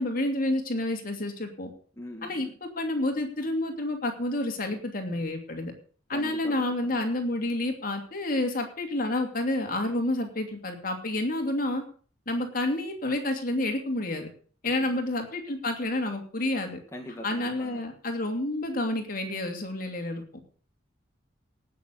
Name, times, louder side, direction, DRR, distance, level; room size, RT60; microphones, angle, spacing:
voice 1, 0.0-1.7 2.2-5.7 6.1-11.8 12.3-14.3 14.6-16.8 17.2-20.2, left 1 dB, 45° left, 4 dB, 2.8 m, -29 dB
voice 2, 2.0-2.5 6.1-7.0 14.7-14.9 16.9-17.8, left 1 dB, 15° left, 0 dB, 2.1 m, -42 dB
18.0 x 6.7 x 6.6 m, 0.44 s
head